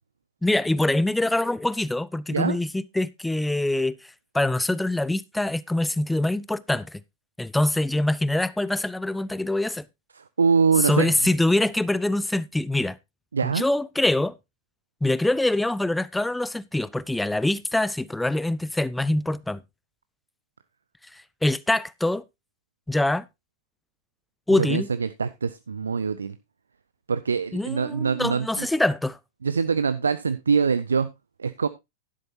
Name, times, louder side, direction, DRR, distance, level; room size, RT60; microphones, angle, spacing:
voice 1, 0.4-4.0 4.3-7.0 7.4-9.8 10.8-13.0 13.4-14.3 15.0-19.6 21.1-22.2 22.9-23.2 24.5-24.9 27.5-29.2, left 1 dB, 5° left, 0.4 m, -24 dB
voice 2, 10.2-11.2 13.3-13.6 24.6-26.4 27.1-28.7 29.4-31.1 31.4-31.7, right 5 dB, 75° right, 0.4 m, -24 dB
11.0 x 11.0 x 2.6 m
figure-of-eight pair, 90°, 0 cm